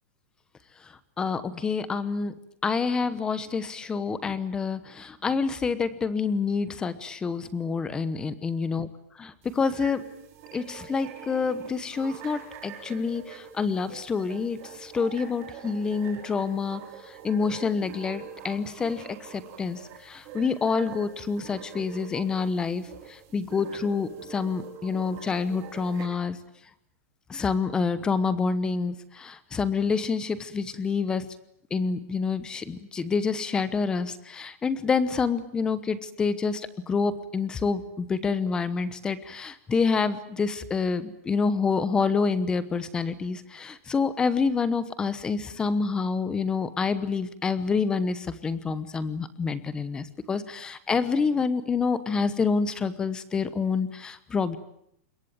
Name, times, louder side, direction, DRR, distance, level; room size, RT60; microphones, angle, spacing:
voice 1, 1.2-2.3 2.6-8.9 9.5-10.0 10.5-16.8 17.2-19.0 19.3-19.8 20.0-22.8 23.3-26.4 27.3-31.2 31.7-36.6 36.9-54.6, left 5 dB, 10° left, 15 dB, 1.0 m, -27 dB
sound 1, 9.4-26.0, right 8 dB, 35° right, 5.7 m, -45 dB
26.0 x 22.5 x 8.8 m, 0.71 s
supercardioid pair, 175°, 8 cm